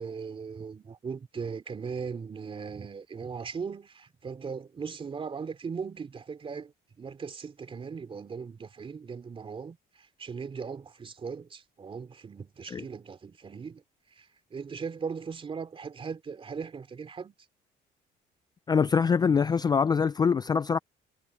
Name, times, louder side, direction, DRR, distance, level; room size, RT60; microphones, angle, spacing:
voice 1, 0.0-13.8 14.1-17.3, right 5 dB, 30° right, 2.9 m, -38 dB
voice 2, 18.7-20.8, left 6 dB, 25° left, 0.4 m, -24 dB
cardioid pair, 110°, 17 cm